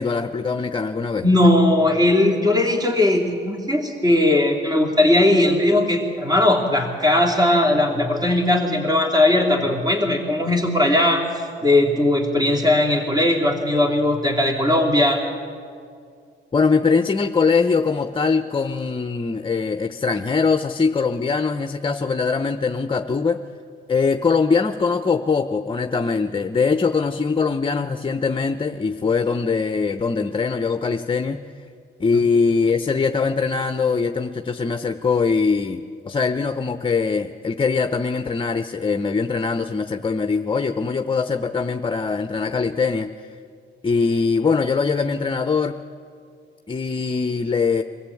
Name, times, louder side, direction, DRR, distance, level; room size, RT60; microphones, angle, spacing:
voice 1, 0.0-1.2 16.5-23.4 23.9-31.5 32.0-43.1 43.8-45.8 46.7-47.8, left 4 dB, 25° left, 8 dB, 0.8 m, -22 dB
voice 2, 1.2-11.2 11.6-15.2, left 1 dB, 20° right, 1 dB, 2.9 m, -18 dB
24.0 x 15.5 x 8.5 m, 2.3 s
cardioid pair, 90°, 20 cm